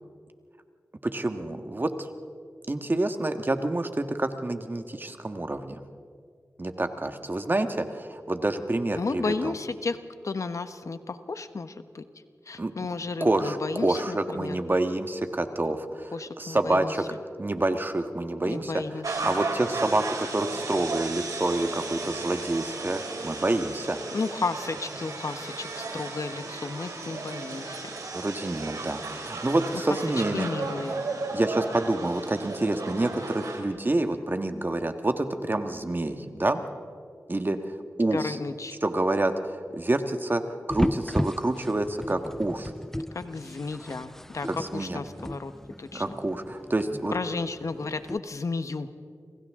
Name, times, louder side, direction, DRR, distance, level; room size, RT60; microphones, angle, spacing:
voice 1, 1.0-2.1 2.7-5.8 6.6-9.5 12.6-12.7 13.2-17.0 17.4-18.7 19.2-24.0 28.1-30.5 31.3-36.6 37.3-38.4 38.8-42.7 44.5-45.0 45.9-47.1, right 2 dB, 35° right, 7 dB, 1.6 m, -28 dB
voice 2, 8.9-10.0 10.2-12.0 12.5-14.6 16.1-16.9 18.4-19.3 24.1-27.9 30.3-31.0 38.1-38.8 43.1-45.5 45.8-46.0 47.1-48.9, left 4 dB, 65° left, 10 dB, 1.1 m, -33 dB
sound 1, 19.0-33.6, right 3 dB, 85° right, 3.4 m, -35 dB
sound 2, 40.7-48.2, left 1 dB, 5° left, 0.4 m, -35 dB
29.5 x 25.5 x 3.7 m, 2.2 s
cardioid pair, 45°, 6 cm